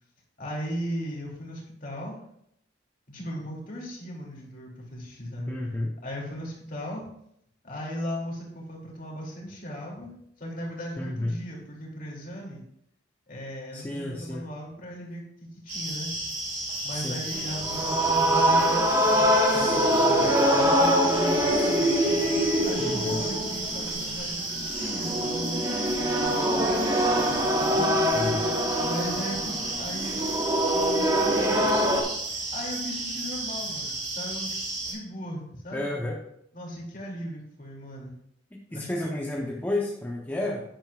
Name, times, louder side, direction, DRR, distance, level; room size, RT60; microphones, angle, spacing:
voice 1, 0.4-2.2 3.1-5.5 6.0-7.1 7.6-10.1 10.4-12.6 13.3-16.1 16.8-19.3 19.5-21.9 22.6-27.7 28.8-30.2 30.6-31.8 32.5-34.5 34.8-35.9 36.5-38.1 38.7-39.1, equal, 45° left, -2 dB, 2.5 m, -37 dB
voice 2, 5.5-5.9 11.0-11.4 13.7-14.4 16.9-17.2 22.8-23.2 28.1-28.5 35.7-36.2 38.7-40.6, left 1 dB, 10° left, -2 dB, 0.8 m, -31 dB
sound 1, 15.7-34.9, right 2 dB, 40° right, 3.6 m, -33 dB
sound 2, 17.3-32.0, equal, 20° right, 1.2 m, -24 dB
10.5 x 9.1 x 2.4 m, 0.74 s
head